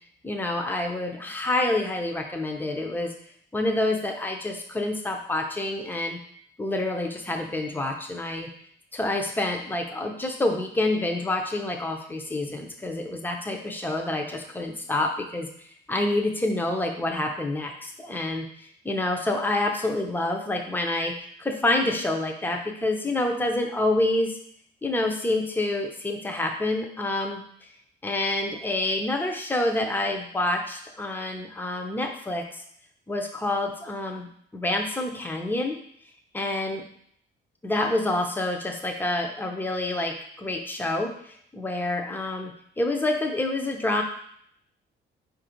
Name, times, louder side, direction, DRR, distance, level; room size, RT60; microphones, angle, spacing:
voice 1, 0.2-3.1 3.5-6.2 6.6-8.5 8.9-15.5 15.9-24.4 24.8-27.4 28.0-32.6 33.1-35.8 36.3-36.8 37.6-44.0, left 2 dB, 10° left, 3 dB, 0.7 m, -27 dB
4.5 x 2.7 x 4.4 m, 0.66 s
cardioid pair, 90°, 20 cm